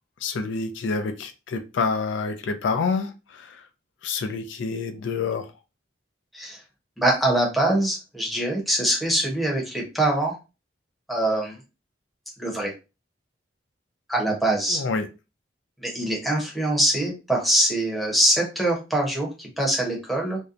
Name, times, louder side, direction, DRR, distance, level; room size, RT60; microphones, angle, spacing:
voice 1, 0.2-3.7 4.0-5.5 14.7-15.1, left 4 dB, 80° left, 0.4 m, -28 dB
voice 2, 7.0-10.4 11.1-11.6 12.4-12.7 14.1-14.8 15.8-20.4, right 1 dB, ahead, 0.7 m, -23 dB
2.7 x 2.1 x 2.4 m
head